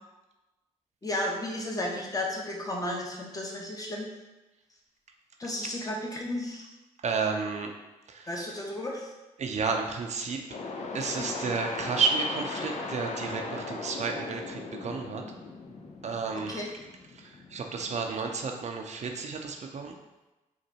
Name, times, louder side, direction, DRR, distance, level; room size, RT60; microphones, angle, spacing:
voice 1, 1.0-4.1 5.4-6.7 8.3-9.1 10.9-11.3 16.5-16.7, left 1 dB, 25° left, -1 dB, 1.0 m, -33 dB
voice 2, 7.0-7.7 8.1-8.3 9.4-10.4 10.9-15.2 16.0-16.6 17.1-20.0, right 5 dB, 50° right, 3 dB, 0.6 m, -31 dB
sound 1, 10.5-17.9, left 3 dB, 50° left, 0.6 m, -38 dB
3.9 x 2.5 x 4.2 m, 1.1 s
supercardioid pair, 50°, 15 cm